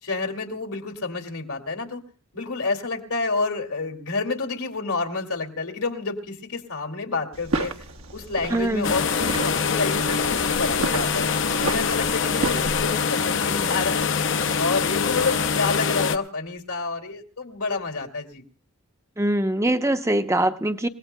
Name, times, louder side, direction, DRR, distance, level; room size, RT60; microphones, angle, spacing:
voice 1, 0.0-2.0 2.3-7.7 8.1-11.3 11.6-18.4, left 3 dB, 85° left, 2 dB, 2.4 m, -29 dB
sound 1, 7.3-12.8, right 2 dB, 75° right, 1.3 m, -32 dB
voice 2, 8.5-8.9 19.2-20.9, right 1 dB, 15° right, 8 dB, 0.7 m, -23 dB
sound 2, 8.8-16.2, left 6 dB, 55° left, 0.7 m, -24 dB
29.0 x 18.0 x 2.2 m, 0.37 s
head